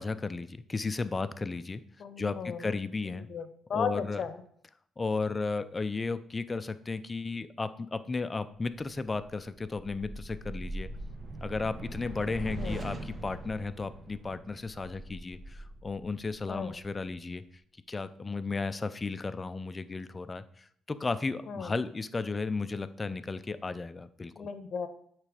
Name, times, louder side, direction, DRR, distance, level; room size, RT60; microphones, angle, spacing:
voice 1, 0.0-1.8 2.2-3.3 3.7-4.2 5.0-10.9 11.4-17.4 17.9-24.5, left 3 dB, 25° left, 13 dB, 0.4 m, -34 dB
voice 2, 2.0-2.6 3.3-4.4 12.4-12.8 16.5-16.8 21.5-21.7 24.4-24.9, left 6 dB, 55° left, 10 dB, 0.8 m, -35 dB
sound 1, 9.2-17.2, right 1 dB, 35° right, 1.0 m, -42 dB
8.5 x 3.3 x 4.9 m, 0.65 s
cardioid pair, 90°, 0 cm